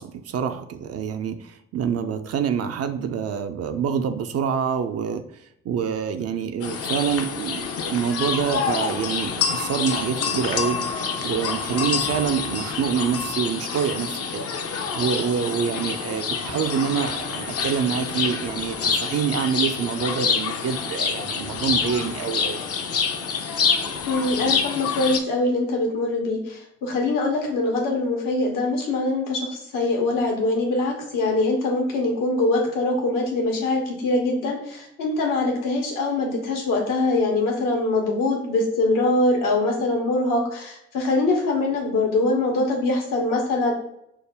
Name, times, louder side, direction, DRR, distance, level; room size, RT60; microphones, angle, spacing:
voice 1, 0.0-1.4 1.7-5.2 5.7-22.6, right 7 dB, 45° right, 8 dB, 0.5 m, -26 dB
sound 1, 6.6-25.2, left 5 dB, 45° left, 0.6 m, -27 dB
voice 2, 24.1-43.7, left 2 dB, 70° left, 0 dB, 1.0 m, -23 dB
5.1 x 2.1 x 3.3 m, 0.77 s
hypercardioid pair, 40°, 34 cm